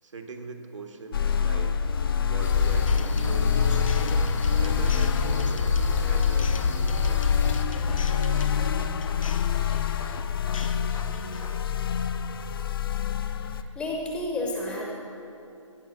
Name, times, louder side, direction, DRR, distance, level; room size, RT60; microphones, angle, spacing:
voice 1, 0.0-1.8 2.3-3.7 4.6-7.7, right 3 dB, 70° right, 4 dB, 1.6 m, -41 dB
sound 1, 1.1-13.6, left 8 dB, 45° left, 0.6 m, -26 dB
sound 2, 2.4-7.6, left 3 dB, 65° left, 1.2 m, -27 dB
sound 3, 2.9-11.8, left 5 dB, 85° left, 0.6 m, -43 dB
voice 2, 13.3-14.9, left 1 dB, 5° left, -1 dB, 0.8 m, -31 dB
16.5 x 5.9 x 6.9 m, 2.7 s
figure-of-eight pair, 155°, 17 cm